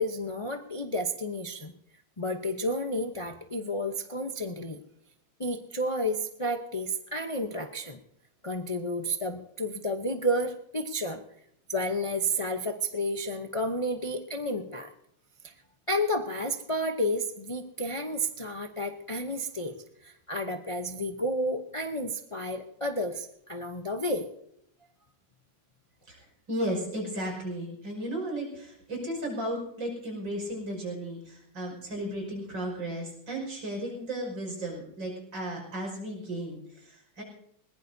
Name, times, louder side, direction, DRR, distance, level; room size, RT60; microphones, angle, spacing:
voice 1, 0.0-1.7 2.2-4.8 5.4-8.0 8.4-11.2 11.7-14.9 15.4-15.5 15.9-19.7 20.0-24.3, equal, 50° left, 4 dB, 0.3 m, -31 dB
voice 2, 26.1-37.2, right 1 dB, 75° right, 0 dB, 6.3 m, -35 dB
20.5 x 20.0 x 2.7 m, 0.71 s
omnidirectional pair, 2.1 m